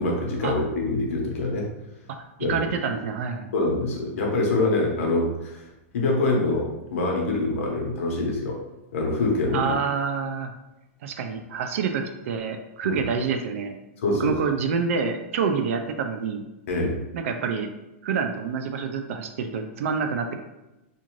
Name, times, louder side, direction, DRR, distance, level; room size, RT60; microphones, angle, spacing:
voice 1, 0.0-1.7 2.4-2.6 3.5-5.7 5.9-8.6 8.9-9.7 12.8-13.0 14.0-14.3 16.7-17.0, left 2 dB, 70° left, -1 dB, 0.9 m, -25 dB
voice 2, 2.5-3.5 9.5-10.5 11.0-13.7 14.2-16.4 17.1-17.7 18.0-20.4, right 5 dB, 70° right, 6 dB, 0.4 m, -27 dB
2.5 x 2.5 x 3.0 m, 1.0 s
supercardioid pair, 155°, 8 cm